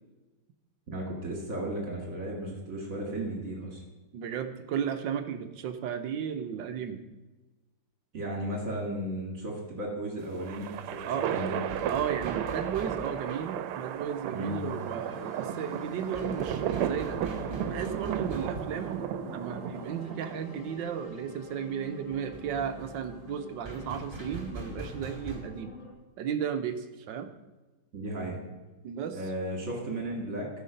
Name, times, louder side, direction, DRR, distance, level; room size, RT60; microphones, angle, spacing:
voice 1, 0.9-3.8 8.1-11.0 11.3-11.5 14.3-14.6 27.9-28.3 29.1-30.5, right 1 dB, 40° right, 0 dB, 2.5 m, -35 dB
voice 2, 4.1-7.0 11.0-11.3 11.8-25.7 26.2-27.3 28.8-29.2, right 8 dB, 70° right, 9 dB, 1.2 m, -34 dB
sound 1, 10.2-20.7, right 10 dB, 90° right, 1.5 m, -34 dB
sound 2, 11.0-25.4, right 1 dB, 15° right, 1.7 m, -45 dB
sound 3, 14.4-25.9, left 6 dB, 50° left, 2.1 m, -47 dB
14.0 x 5.8 x 5.1 m, 1.2 s
omnidirectional pair, 2.4 m